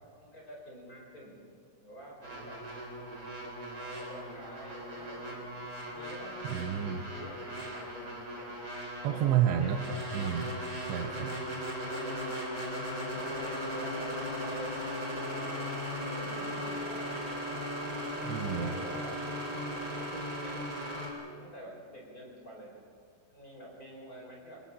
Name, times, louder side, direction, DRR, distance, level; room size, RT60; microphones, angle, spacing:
voice 1, 0.1-1.4 1.8-2.6 3.7-5.5 5.8-6.5 7.0-8.6 9.0-10.0 11.8-12.4 13.1-17.4 18.2-19.2 19.9-20.6 21.4-22.7 23.3-24.6, equal, 20° left, -2 dB, 4.4 m, -48 dB
sound 1, 2.2-21.1, equal, 20° right, 4.1 m, -38 dB
voice 2, 6.5-7.0 9.0-9.8 10.1-10.6 10.9-11.4 18.3-18.7, right 10 dB, 75° right, 5 dB, 2.9 m, -30 dB
25.0 x 20.0 x 7.4 m, 2.2 s
omnidirectional pair, 5.8 m